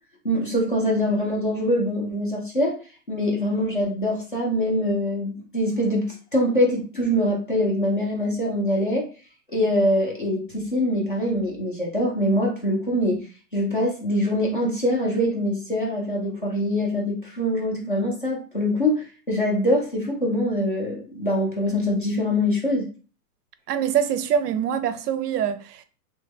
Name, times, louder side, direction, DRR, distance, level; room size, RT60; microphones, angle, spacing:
voice 1, 0.2-2.8 3.1-9.1 9.5-13.2 13.5-22.9, left 1 dB, 35° left, 0.4 m, -24 dB
voice 2, 23.7-25.8, right 8 dB, 75° right, 0.6 m, -24 dB
3.0 x 2.2 x 3.2 m
hypercardioid pair, 180°, 48 cm